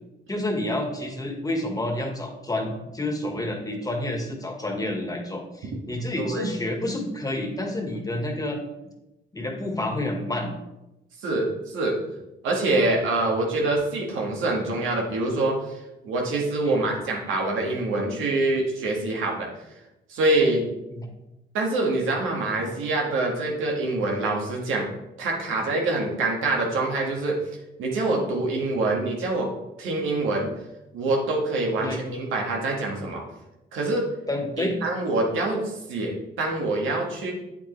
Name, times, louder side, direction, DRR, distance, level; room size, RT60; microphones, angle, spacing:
voice 1, 0.3-8.6 9.3-10.6 16.6-16.9 20.9-21.0 31.8-32.0 34.3-34.8, left 1 dB, 20° left, 3 dB, 1.7 m, -29 dB
voice 2, 6.2-6.5 11.2-12.0 12.4-19.5 20.1-20.6 21.5-24.9 25.2-27.4 27.8-29.5 29.8-30.5 30.9-33.2 33.7-34.0 34.6-37.3, right 2 dB, 85° right, -1 dB, 2.2 m, -25 dB
8.5 x 8.3 x 3.4 m, 0.94 s
cardioid pair, 90°, 20 cm